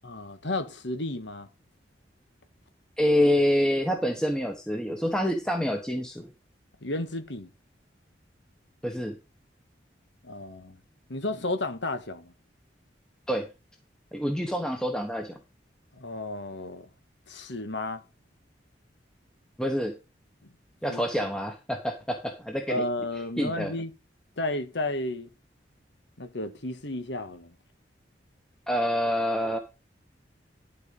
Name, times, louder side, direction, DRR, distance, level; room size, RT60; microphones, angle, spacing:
voice 1, 0.0-1.5 6.8-7.5 10.2-10.8 11.1-12.3 16.0-16.9 17.3-18.0 20.9-21.0 22.7-23.9 24.4-25.3 26.2-27.5, left 2 dB, 80° left, 1.6 m, -32 dB
voice 2, 3.0-6.3 8.8-9.2 13.3-13.5 14.1-15.4 19.6-20.0 20.8-22.8 23.4-23.7 28.7-29.6, equal, 5° left, 1.1 m, -27 dB
11.5 x 5.0 x 5.4 m
head